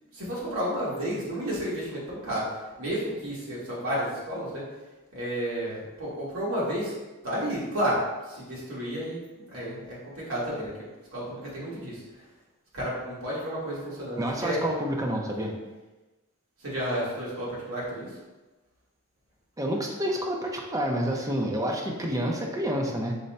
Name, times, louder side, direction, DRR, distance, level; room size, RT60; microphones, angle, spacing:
voice 1, 0.1-4.6 5.1-6.9 7.2-8.0 8.3-10.7 11.1-12.0 12.7-14.6 15.4-15.5 16.6-18.2, equal, 65° right, -7 dB, 1.5 m, -31 dB
voice 2, 14.2-15.5 19.6-23.1, equal, 15° right, 0 dB, 0.5 m, -28 dB
5.2 x 2.2 x 4.1 m, 1.1 s
head